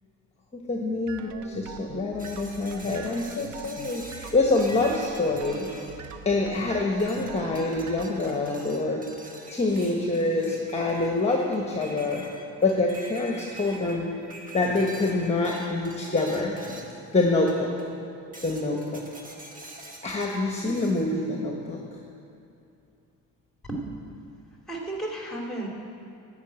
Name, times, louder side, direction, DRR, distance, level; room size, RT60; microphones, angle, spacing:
voice 1, 0.5-5.7 6.2-9.0 9.5-12.2 12.6-14.1 14.5-16.8 17.1-17.7 18.4-19.0 20.0-21.8, left 2 dB, 20° left, 0 dB, 1.3 m, -26 dB
sound 1, 1.1-8.0, right 6 dB, 75° right, 0.8 m, -42 dB
sound 2, 2.2-6.6 7.0-17.1 17.5-18.0 18.3-21.1, right 1 dB, 25° right, 1.6 m, -45 dB
voice 2, 23.7-24.1 24.7-25.7, right 2 dB, ahead, -1 dB, 2.6 m, -33 dB
11.0 x 5.9 x 8.8 m, 2.6 s
cardioid pair, 90°, 30 cm